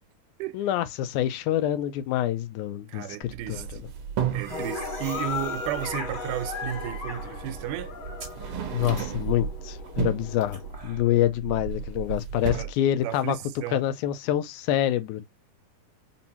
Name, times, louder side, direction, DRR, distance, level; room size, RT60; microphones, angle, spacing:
voice 1, 0.5-3.7 8.7-13.4 13.7-15.2, left 12 dB, 80° left, 2.0 m, -26 dB
voice 2, 2.9-3.8 4.3-7.9 12.4-12.7 13.0-13.8, right 11 dB, 85° right, 2.1 m, -33 dB
sound 1, 3.2-12.7, right 5 dB, 35° right, 1.8 m, -38 dB
sound 2, 3.5-4.6 6.2-6.3 7.5-7.7 8.2-9.5 9.8-10.3 11.7-12.0 12.3-12.6, right 8 dB, 65° right, 1.7 m, -32 dB
sound 3, 4.5-10.7, left 5 dB, 60° left, 1.4 m, -37 dB
5.4 x 2.6 x 2.8 m
omnidirectional pair, 3.6 m